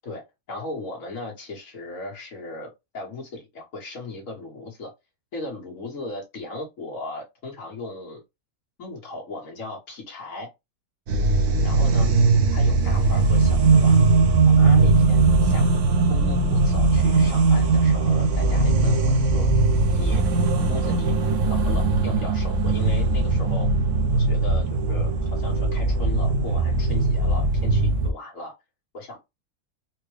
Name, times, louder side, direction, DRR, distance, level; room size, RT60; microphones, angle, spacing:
voice 1, 0.0-4.9 5.3-8.2 8.8-10.5 11.6-12.1 12.5-14.0 14.4-15.7 16.1-19.5 19.9-20.2 20.7-21.1 21.4-23.7 24.1-28.5 28.9-29.3, left 2 dB, 60° left, 1.6 m, -37 dB
sound 1, 11.1-28.1, right 3 dB, 65° right, 0.9 m, -20 dB
4.3 x 2.2 x 3.2 m
omnidirectional pair, 1.6 m